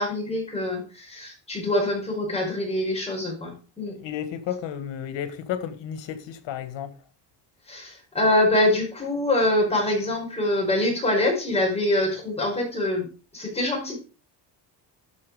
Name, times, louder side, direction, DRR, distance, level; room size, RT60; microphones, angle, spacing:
voice 1, 0.0-4.0 7.7-14.0, left 1 dB, 15° left, 5.3 m, -25 dB
voice 2, 3.8-7.0, left 9 dB, 90° left, 1.8 m, -33 dB
12.0 x 7.3 x 5.0 m
cardioid pair, 165°, 43 cm